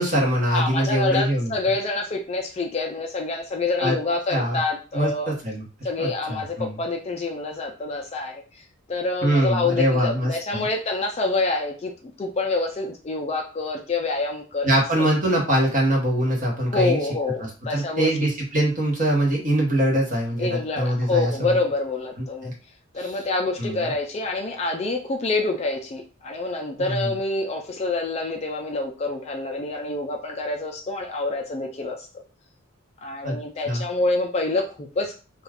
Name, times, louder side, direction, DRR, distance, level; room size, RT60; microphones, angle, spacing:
voice 1, 0.0-1.5 3.8-4.0 4.3-4.6 4.9-6.8 9.2-10.7 14.6-17.0 17.4-21.6 22.2-22.5 23.0-23.1 23.6-23.9 26.8-27.1 33.2-33.4 33.7-33.8, right 1 dB, 35° right, -2 dB, 1.0 m, -23 dB
voice 2, 0.5-5.3 5.8-11.9 12.2-14.7 16.7-18.1 20.4-22.5 22.9-32.1 33.0-35.1, left 3 dB, 30° left, 3 dB, 0.3 m, -27 dB
2.3 x 2.3 x 3.4 m, 0.35 s
head